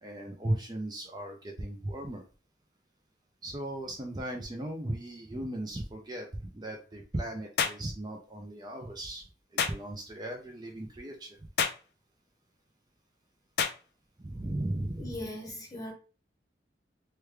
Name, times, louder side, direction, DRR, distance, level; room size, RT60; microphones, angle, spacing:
voice 1, 0.0-2.2 3.4-9.2 9.5-11.4 14.2-15.2, right 1 dB, 25° right, 0.4 m, -37 dB
sound 1, 7.6-7.8 9.6-9.8 11.6-11.8 13.6-13.8, left 6 dB, 60° left, 0.4 m, -28 dB
voice 2, 15.0-15.9, left 1 dB, 20° left, 0.9 m, -39 dB
3.2 x 2.2 x 3.3 m
head